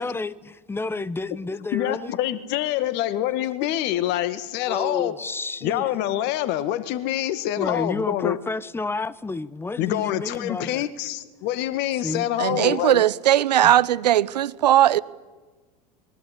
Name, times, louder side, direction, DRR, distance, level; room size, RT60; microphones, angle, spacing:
voice 1, 0.0-2.2 3.9-4.0 4.7-5.9 7.6-10.9 12.0-12.8, left 3 dB, 10° left, 1.0 m, -31 dB
voice 2, 1.7-5.1 5.6-8.4 9.8-13.0 13.6-13.7, left 13 dB, 55° left, 1.9 m, -26 dB
voice 3, 12.4-15.0, right 12 dB, 80° right, 0.8 m, -18 dB
26.0 x 22.0 x 8.4 m
hypercardioid pair, 85°, 21 cm